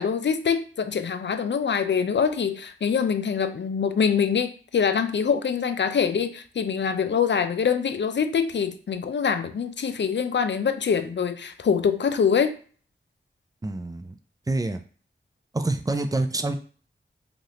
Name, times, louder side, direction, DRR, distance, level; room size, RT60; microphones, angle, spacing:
voice 1, 0.0-12.6, left 6 dB, 60° left, 9 dB, 0.4 m, -24 dB
voice 2, 13.6-14.1 14.5-14.8 15.5-16.5, right 2 dB, 15° right, 7 dB, 0.4 m, -26 dB
3.1 x 2.5 x 2.7 m, 0.42 s
cardioid pair, 45°, 21 cm